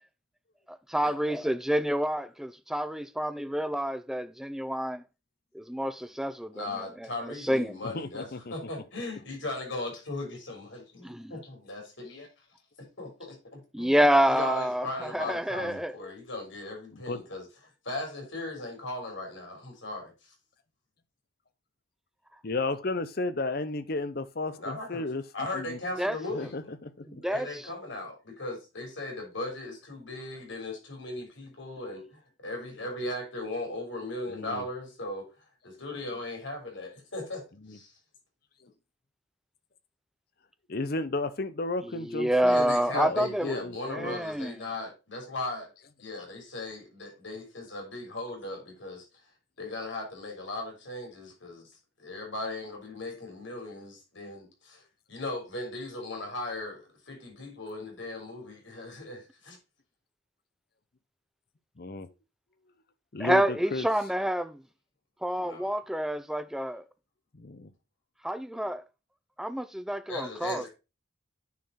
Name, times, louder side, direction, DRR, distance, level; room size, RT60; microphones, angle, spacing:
voice 1, 0.7-5.0 5.5-7.8 11.0-11.3 13.7-15.9 26.0-26.2 27.2-27.7 42.1-43.6 43.8-44.6 63.2-64.6 65.2-66.8 68.2-68.8 69.4-70.7, equal, ahead, 0.4 m, -28 dB
voice 2, 6.5-12.3 13.0-14.0 14.3-17.4 17.8-20.3 24.6-25.1 25.3-26.6 27.3-35.3 35.6-38.0 42.5-45.7 46.0-49.3 49.6-54.8 55.1-59.6 65.4-65.8 70.1-70.7, left 2 dB, 65° left, 3.8 m, -38 dB
voice 3, 7.8-8.5 15.6-15.8 16.9-17.2 22.4-25.2 25.5-25.8 26.3-27.3 34.3-34.6 37.6-37.8 38.6-38.7 40.7-44.2 61.8-62.1 63.1-63.9 67.3-67.7, left 3 dB, 45° left, 0.7 m, -34 dB
9.4 x 4.4 x 4.1 m
head